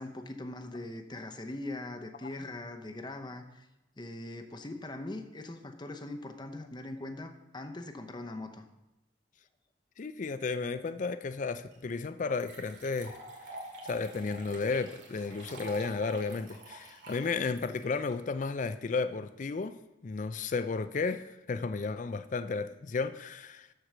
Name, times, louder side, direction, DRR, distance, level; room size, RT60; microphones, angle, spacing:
voice 1, 0.0-3.7 4.0-8.6, left 2 dB, 25° left, 0.8 m, -41 dB
voice 2, 10.0-13.2 13.8-19.8 20.0-23.7, left 4 dB, 45° left, 0.4 m, -33 dB
sound 1, 11.7-11.8 12.4-18.7, right 2 dB, 80° right, 2.3 m, -47 dB
13.0 x 4.7 x 6.1 m
head